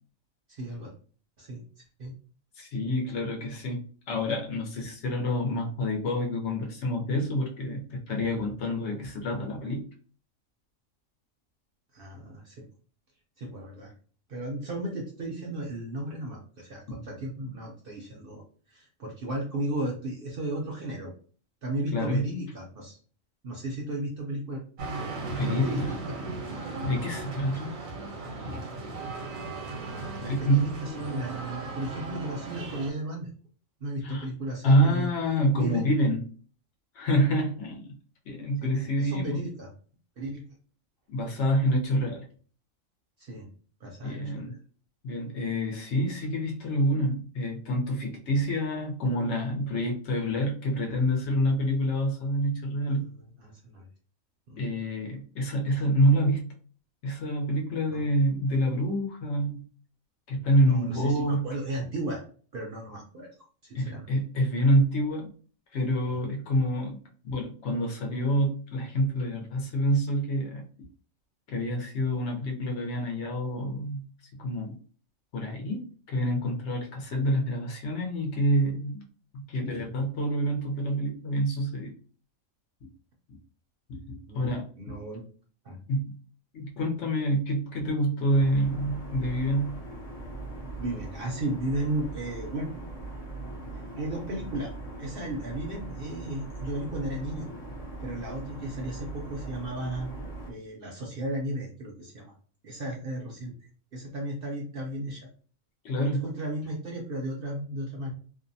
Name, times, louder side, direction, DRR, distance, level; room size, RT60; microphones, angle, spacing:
voice 1, 0.5-0.9 1.4-1.6 2.0-2.1 11.9-12.7 13.4-13.9 14.3-18.4 18.7-21.1 21.6-23.0 23.4-24.6 25.4-26.2 28.4-28.6 30.2-33.3 33.8-35.1 35.6-35.9 38.6-39.7 40.2-40.4 43.2-43.5 43.8-44.6 52.8-53.0 53.4-53.9 54.5-54.6 57.9-58.1 60.6-62.2 62.5-63.3 63.6-64.1 66.1-66.2 84.3-84.5 84.8-85.3 85.6-85.8 90.8-92.7 94.0-97.5 98.0-100.1 100.5-102.3 102.6-103.5 103.9-105.3 106.0-108.1, right 1 dB, 60° right, 0 dB, 0.6 m, -34 dB
voice 2, 2.6-9.9 16.9-17.0 21.9-22.3 25.3-26.0 26.8-27.8 28.4-28.6 30.2-30.7 34.0-34.3 34.6-36.2 36.9-37.9 38.3-39.4 41.1-42.2 44.0-44.6 45.0-53.1 54.6-56.5 57.0-59.6 60.3-61.5 63.7-65.3 65.7-67.0 67.2-70.6 71.5-74.1 74.3-74.8 75.3-79.0 79.3-81.9 83.9-85.0 85.9-86.1 86.5-89.8 105.8-106.3, equal, 65° left, 1 dB, 0.9 m, -27 dB
sound 1, 24.8-32.9, right 2 dB, 85° right, 1.1 m, -36 dB
sound 2, 88.3-100.5, right 2 dB, 40° left, 0.6 m, -40 dB
2.6 x 2.1 x 2.6 m, 0.41 s
omnidirectional pair, 1.4 m